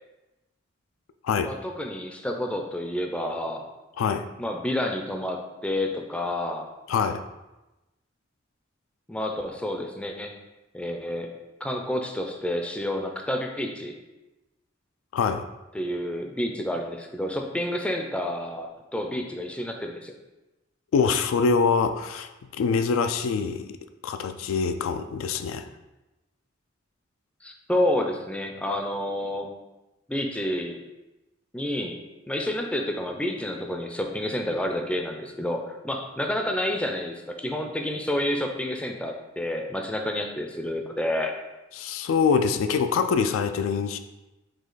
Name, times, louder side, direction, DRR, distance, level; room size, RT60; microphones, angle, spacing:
voice 1, 1.4-3.6 4.4-6.7 9.1-10.4 10.7-11.3 11.6-13.9 15.7-20.1 27.4-29.5 30.1-30.8 31.5-32.0 32.3-41.3, left 1 dB, 5° left, 3 dB, 0.4 m, -29 dB
voice 2, 6.9-7.2 15.1-15.4 20.9-23.8 24.0-25.7 41.8-44.0, left 5 dB, 85° left, 8 dB, 0.3 m, -24 dB
5.0 x 2.3 x 3.9 m, 1.0 s
head